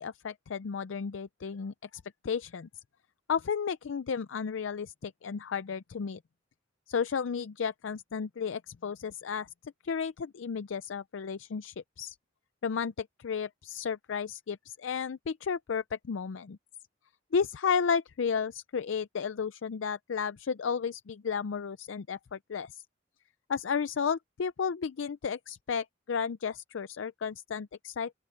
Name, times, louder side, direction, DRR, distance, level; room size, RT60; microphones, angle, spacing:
voice 1, 0.0-1.7 2.2-2.7 3.3-6.2 6.9-12.2 12.6-16.6 17.3-22.8 23.5-28.1, left 6 dB, 80° left, 0.4 m, -33 dB
open air
head